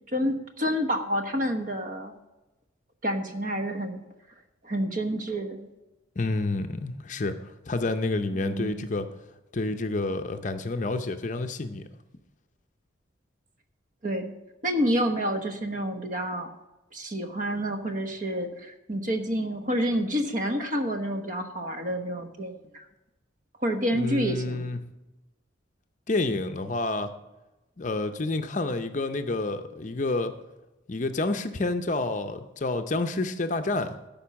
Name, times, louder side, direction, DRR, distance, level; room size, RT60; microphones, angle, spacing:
voice 1, 0.1-2.2 3.0-4.0 4.6-5.7 8.3-8.9 14.0-14.3 14.6-16.5 16.9-22.8 23.6-24.7, equal, 40° right, 5 dB, 1.1 m, -29 dB
voice 2, 6.2-9.1 9.5-11.8 23.9-24.8 26.1-27.1 27.8-30.3 30.9-34.0, left 2 dB, 40° left, 8 dB, 0.6 m, -29 dB
13.0 x 5.4 x 7.0 m, 1.0 s
head